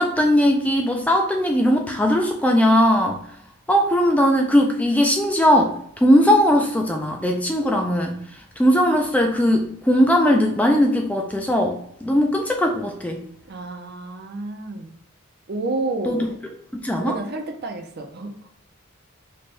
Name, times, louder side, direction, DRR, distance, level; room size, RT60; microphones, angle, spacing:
voice 1, 0.0-3.2 3.7-5.7 6.0-8.2 8.6-13.2 16.1-16.3 16.8-17.2, equal, 5° left, 2 dB, 0.3 m, -19 dB
voice 2, 13.5-15.0 15.5-16.4 17.0-18.3, right 2 dB, 50° right, 4 dB, 0.5 m, -30 dB
3.2 x 2.2 x 4.2 m, 0.71 s
head